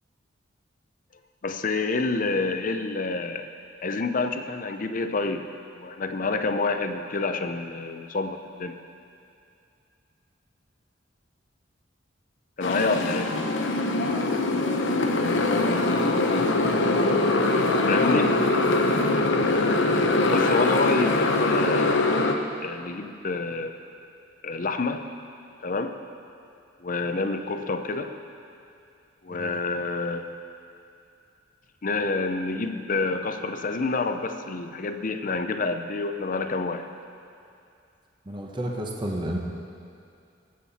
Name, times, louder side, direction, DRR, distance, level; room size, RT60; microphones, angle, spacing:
voice 1, 1.4-3.5 3.8-5.5 5.7-8.8 12.6-13.3 17.9-18.4 20.3-22.0 22.6-23.7 24.4-25.1 25.6-25.9 26.8-28.1 29.2-30.3 31.8-36.9, left 3 dB, 45° left, 7 dB, 0.6 m, -28 dB
Motorcycle, 12.6-22.3, left 2 dB, 75° left, 0.8 m, -22 dB
voice 2, 38.3-39.4, right 1 dB, 25° right, 0 dB, 1.0 m, -31 dB
20.5 x 7.5 x 4.2 m, 2.5 s
head